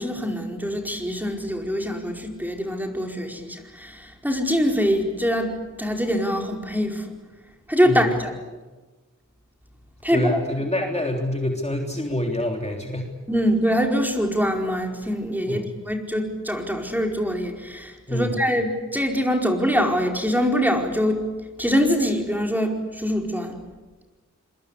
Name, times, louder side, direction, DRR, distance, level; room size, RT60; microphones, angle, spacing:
voice 1, 0.0-7.1 7.7-8.3 10.0-10.3 13.3-21.2 21.6-23.6, equal, 5° right, 2 dB, 4.9 m, -24 dB
voice 2, 10.1-13.1 15.5-15.7 18.1-18.3, left 1 dB, 20° left, 1 dB, 3.5 m, -26 dB
26.5 x 23.5 x 8.4 m, 1.2 s
wide cardioid pair, 65°, 31 cm